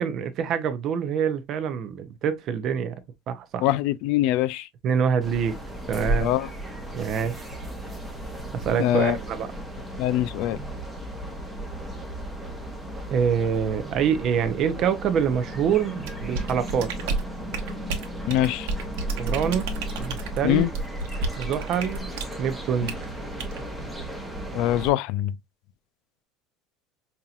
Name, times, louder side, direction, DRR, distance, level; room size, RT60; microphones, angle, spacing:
voice 1, 0.0-3.0 3.3-3.7 4.8-5.5 5.9-6.3 6.9-7.4 8.5-9.5 13.1-16.9 19.2-19.7 20.0-20.7 21.4-22.1 22.4-22.9, right 7 dB, 35° right, 0.6 m, -25 dB
voice 2, 3.6-4.7 6.2-6.5 8.8-9.2 10.0-10.6 18.3-18.7 20.4-20.7 22.8-22.9 24.5-25.3, left 13 dB, 60° left, 0.3 m, -23 dB
sound 1, 5.2-24.9, right 1 dB, 5° right, 0.8 m, -35 dB
sound 2, 16.0-22.4 22.9-23.0 23.4-23.6, right 3 dB, 90° right, 1.0 m, -32 dB
5.4 x 2.8 x 2.4 m
cardioid pair, 170°, 0 cm